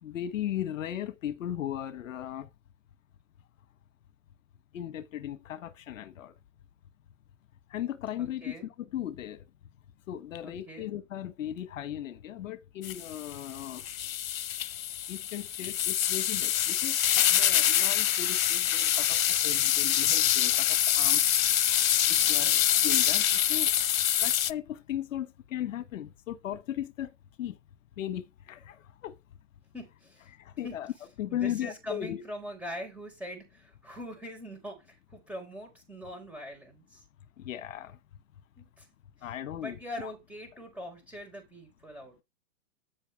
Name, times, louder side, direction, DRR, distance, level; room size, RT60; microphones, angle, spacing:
voice 1, 0.0-2.5 4.7-6.4 7.7-9.4 10.1-13.9 15.1-17.0 17.3-21.2 21.7-21.8 22.1-22.5 22.8-23.7 24.2-27.1 27.4-27.6 28.0-29.2 30.3-30.9 31.2-32.2 37.4-38.0 39.2-40.1, left 11 dB, 70° left, 1.3 m, -37 dB
voice 2, 8.2-8.7 10.4-10.9 22.2-22.6 29.7-30.3 30.6-30.7 31.3-37.0 38.6-38.9 39.6-42.2, equal, 5° right, 4.5 m, -42 dB
sound 1, 12.8-24.5, left 11 dB, 90° left, 0.8 m, -25 dB
14.0 x 5.6 x 3.3 m
hypercardioid pair, 140°, 39 cm